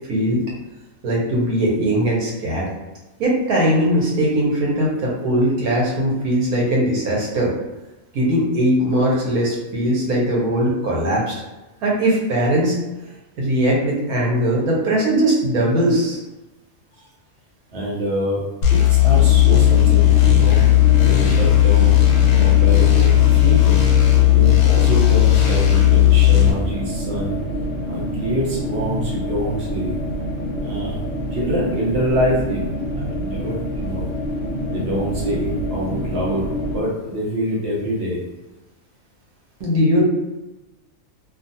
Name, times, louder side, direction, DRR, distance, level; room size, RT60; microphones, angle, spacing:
voice 1, 0.1-0.4 1.0-2.7 3.2-7.5 8.1-11.4 11.8-12.8 13.4-16.2 39.6-40.0, right 1 dB, 75° right, -4 dB, 1.3 m, -20 dB
voice 2, 17.7-20.6 21.0-22.0 22.4-23.8 24.3-27.4 27.9-30.0 30.6-31.0 31.3-32.6 32.9-34.0 34.7-38.2, equal, 50° right, -5 dB, 0.9 m, -25 dB
sound 1, 18.6-26.5, left 14 dB, 85° left, 1.1 m, -14 dB
sound 2, 19.1-36.8, equal, 55° left, 1.0 m, -27 dB
2.7 x 2.4 x 2.6 m, 1.1 s
omnidirectional pair, 1.6 m